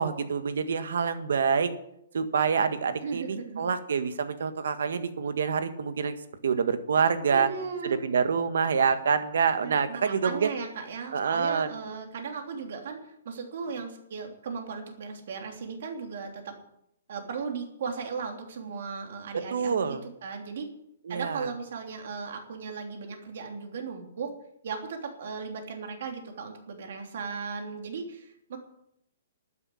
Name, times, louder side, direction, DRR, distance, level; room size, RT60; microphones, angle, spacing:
voice 1, 0.0-1.7 2.1-6.2 6.4-7.5 7.8-10.5 11.1-11.7 19.3-20.0 21.1-21.5, right 6 dB, 70° right, 10 dB, 1.7 m, -26 dB
voice 2, 3.0-3.6 7.3-8.0 9.6-16.5 17.1-20.7 21.1-24.3 24.6-28.6, right 5 dB, 50° right, 3 dB, 3.1 m, -37 dB
12.0 x 10.0 x 8.6 m, 0.76 s
hypercardioid pair, 180°, 0 cm